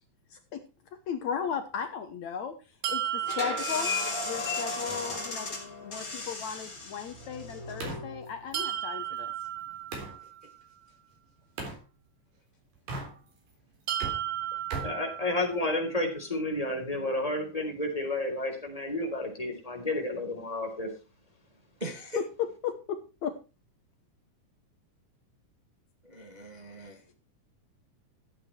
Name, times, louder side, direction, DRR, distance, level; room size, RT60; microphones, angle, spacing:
voice 1, 0.3-0.6 1.1-2.5 2.9-3.9 4.2-5.6 5.8-9.3 22.2-23.4, left 7 dB, 65° left, 2.3 m, -35 dB
sound 1, 2.8-4.8 8.5-10.6 13.9-15.9, right 11 dB, 65° right, 2.1 m, -35 dB
sound 2, 3.2-8.7, left 3 dB, 25° left, 3.6 m, -35 dB
sound 3, 4.9-10.2 11.6-11.8 12.7-13.5 13.8-15.8, right 3 dB, 80° right, 5.5 m, -42 dB
voice 2, 14.8-20.9, left 2 dB, 10° left, 3.8 m, -31 dB
voice 3, 21.8-22.2 26.1-27.0, equal, 20° right, 1.5 m, -38 dB
14.5 x 8.5 x 4.5 m
omnidirectional pair, 3.8 m